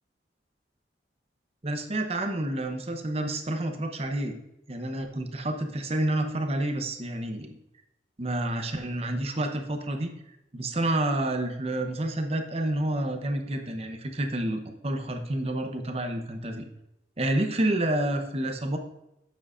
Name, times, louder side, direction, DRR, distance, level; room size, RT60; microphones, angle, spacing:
voice 1, 1.6-4.4 4.7-7.6 8.2-10.1 10.5-16.7 17.2-18.8, right 1 dB, 35° right, 5 dB, 0.8 m, -29 dB
9.6 x 7.5 x 2.5 m, 0.87 s
head